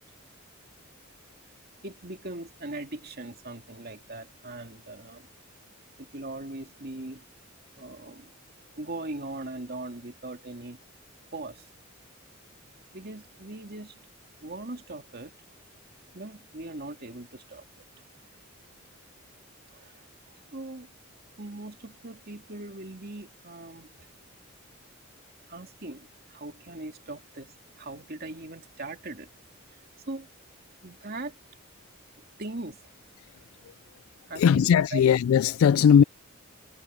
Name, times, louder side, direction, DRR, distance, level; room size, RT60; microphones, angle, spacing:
voice 1, 1.8-5.3 6.0-7.2 7.8-8.3 8.8-10.8 11.3-11.6 12.9-14.0 14.4-15.3 16.1-17.6 19.7-19.9 20.5-20.9 21.4-23.9 25.5-29.3 30.1-30.3 30.8-31.3 32.4-32.8 34.3-35.0, right 2 dB, 50° right, 2.8 m, -40 dB
voice 2, 34.4-36.0, left 8 dB, 80° left, 0.3 m, -19 dB
head